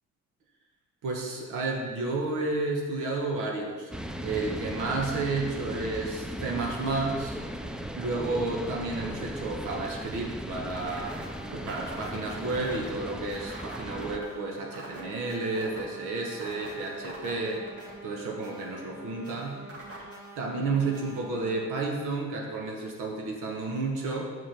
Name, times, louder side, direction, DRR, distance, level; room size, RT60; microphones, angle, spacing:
voice 1, 1.0-3.9 4.2-7.4 7.9-11.2 11.5-17.6 18.0-19.6 20.4-24.4, right 3 dB, 85° right, 0 dB, 1.2 m, -31 dB
sound 1, 3.9-14.2, equal, 5° right, 0.4 m, -37 dB
sound 2, 10.7-21.6, right 1 dB, 50° right, 1.7 m, -44 dB
5.9 x 5.1 x 5.9 m, 1.4 s
cardioid pair, 90°, 30 cm